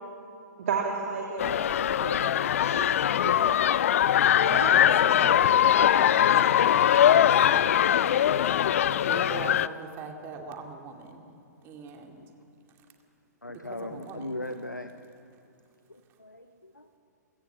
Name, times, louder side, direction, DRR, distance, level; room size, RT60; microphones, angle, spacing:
voice 1, 0.6-2.9 3.2-3.9 4.4-5.5, right 5 dB, 50° right, 0 dB, 2.5 m, -34 dB
sound 1, 1.4-9.7, left 10 dB, 50° left, 0.5 m, -22 dB
voice 2, 4.7-6.4 7.3-8.0 9.0-11.3 11.6-12.2 13.5-14.4, right 4 dB, 25° right, 3 dB, 2.4 m, -42 dB
voice 3, 13.4-15.1 15.9-17.0, left 1 dB, 85° left, 8 dB, 1.0 m, -39 dB
28.5 x 16.5 x 7.2 m, 2.5 s
figure-of-eight pair, 115°, 10 cm